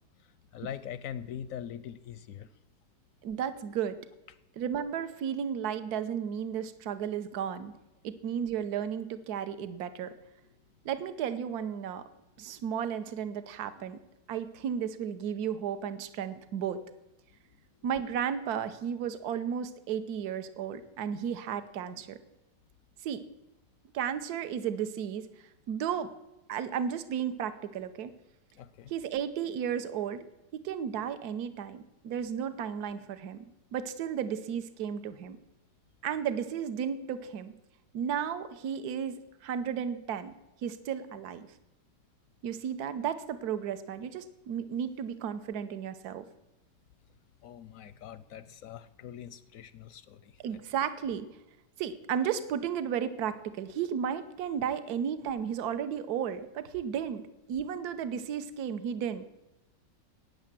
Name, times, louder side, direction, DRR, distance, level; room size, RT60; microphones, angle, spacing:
voice 1, 0.5-2.5 28.5-28.9 47.4-50.6, left 9 dB, 65° left, 15 dB, 0.8 m, -42 dB
voice 2, 3.2-4.0 4.6-7.7 8.0-10.1 10.8-12.0 12.4-14.0 14.3-16.8 17.8-22.2 23.0-23.2 23.9-25.3 25.7-26.1 26.5-28.1 28.9-30.2 30.5-33.4 33.7-35.4 36.0-37.5 37.9-40.3 40.6-41.5 42.4-46.3 50.4-51.3 51.8-57.2 57.5-59.2, right 8 dB, 65° right, 11 dB, 1.3 m, -33 dB
13.0 x 9.4 x 7.5 m, 0.94 s
omnidirectional pair, 1.9 m